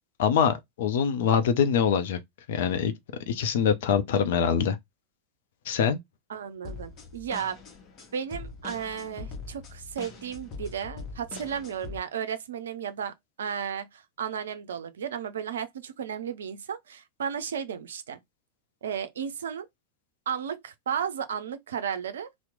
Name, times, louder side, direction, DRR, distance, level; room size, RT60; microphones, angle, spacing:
voice 1, 0.2-2.2 2.5-2.9 3.3-4.8 5.7-6.0, left 7 dB, 55° left, 0.5 m, -24 dB
voice 2, 6.3-7.6 8.1-18.2 18.8-19.7 20.3-22.3, right 8 dB, 65° right, 0.4 m, -34 dB
sound 1, 6.6-12.0, left 4 dB, 30° left, 0.9 m, -42 dB
2.9 x 2.0 x 3.6 m
figure-of-eight pair, 90°, 0 cm